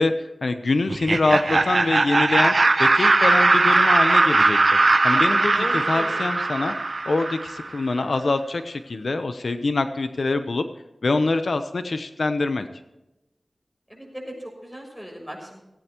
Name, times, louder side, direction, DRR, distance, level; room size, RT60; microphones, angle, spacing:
voice 1, 0.0-4.6 5.0-6.7 7.1-10.6 11.0-12.7, left 3 dB, 80° left, 9 dB, 0.9 m, -24 dB
Laughter, 0.9-7.7, right 3 dB, 55° right, 0.8 m, -19 dB
voice 2, 3.1-3.7 5.6-6.3 13.9-15.6, equal, 5° left, 0 dB, 6.4 m, -37 dB
17.5 x 16.0 x 3.1 m, 0.97 s
wide cardioid pair, 80°, 0 cm